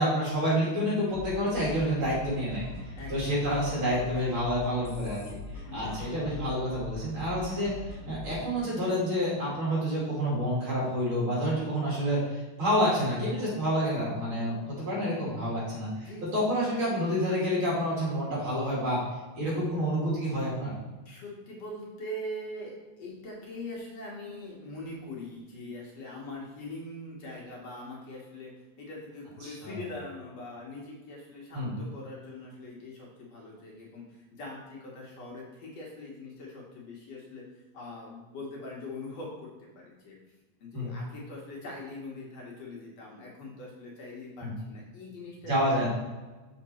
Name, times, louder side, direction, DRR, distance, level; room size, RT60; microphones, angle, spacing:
voice 1, 0.0-2.6 3.1-19.0 19.3-20.7 29.4-29.8 31.5-31.7 40.7-40.9 44.4-44.5 45.5-45.9, equal, 45° right, -7 dB, 3.0 m, -28 dB
sound 1, 1.1-8.5, left 2 dB, 45° left, 1.6 m, -42 dB
voice 2, 3.0-3.7 5.7-6.0 16.0-16.4 21.1-28.5 28.8-40.2 40.6-45.7, left 1 dB, 65° left, -4 dB, 2.2 m, -42 dB
6.6 x 5.1 x 4.2 m, 1.2 s
omnidirectional pair, 3.4 m